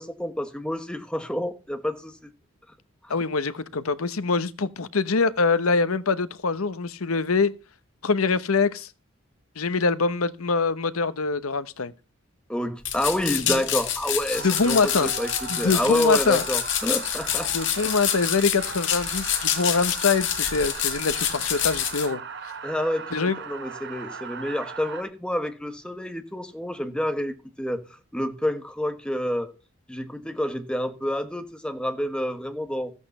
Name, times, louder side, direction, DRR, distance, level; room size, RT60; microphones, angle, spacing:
voice 1, 0.0-2.3 3.0-3.1 12.5-15.3 15.6-17.5 17.8-17.9 22.6-27.8 28.1-29.6 29.9-32.9, left 1 dB, 5° left, 1.2 m, -28 dB
voice 2, 3.1-7.5 8.0-8.9 9.6-11.9 13.4-13.6 14.4-15.1 15.5-16.4 17.5-22.2 23.1-23.4, left 4 dB, 85° left, 0.9 m, -24 dB
sound 1, 12.8-22.1, left 10 dB, 55° left, 2.2 m, -27 dB
sound 2, 14.3-25.0, right 5 dB, 50° right, 1.0 m, -38 dB
14.0 x 8.3 x 5.4 m
head